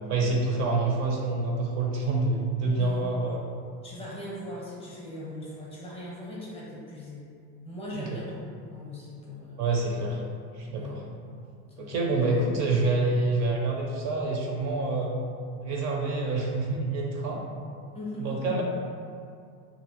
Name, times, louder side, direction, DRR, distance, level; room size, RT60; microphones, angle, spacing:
voice 1, 0.1-3.4 7.9-8.2 9.6-10.2 10.5-11.0 11.8-15.2 15.6-17.4 18.2-18.6, right 3 dB, 50° right, -1 dB, 0.4 m, -27 dB
voice 2, 2.6-3.3 3.8-7.3 7.6-8.3 8.7-9.6 10.8-11.1 11.8-11.9 17.9-18.5, left 1 dB, 15° left, -6 dB, 0.6 m, -39 dB
2.7 x 2.6 x 2.9 m, 2.3 s
supercardioid pair, 125°, 35 cm